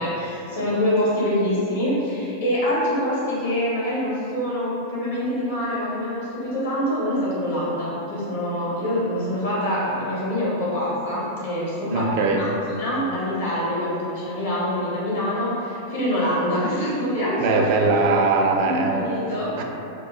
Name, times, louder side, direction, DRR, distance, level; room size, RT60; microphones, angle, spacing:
voice 1, 0.0-12.1 12.4-17.7 18.6-19.5, equal, 60° left, -8 dB, 1.1 m, -25 dB
voice 2, 11.9-12.5 17.4-19.2 19.6-19.7, right 3 dB, 45° right, 2 dB, 0.3 m, -21 dB
4.1 x 2.2 x 2.4 m, 2.8 s
figure-of-eight pair, 90°, 0 cm